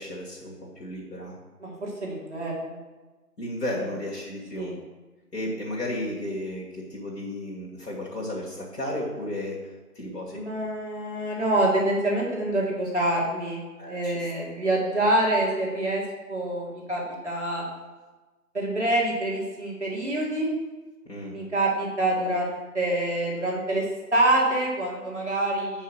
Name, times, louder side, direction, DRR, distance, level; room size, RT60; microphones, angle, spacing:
voice 1, 0.0-1.4 3.4-4.8 5.3-10.4 13.8-14.3 14.7-14.8 21.1-21.4, left 1 dB, 90° left, -5 dB, 2.2 m, -34 dB
voice 2, 1.6-2.8 4.5-4.7 10.3-13.6 13.9-16.0 16.3-17.6 18.5-20.5 21.3-23.8 24.1-25.8, right 1 dB, 45° right, -4 dB, 2.1 m, -26 dB
5.6 x 5.2 x 6.2 m, 1.2 s
figure-of-eight pair, 175°, 47 cm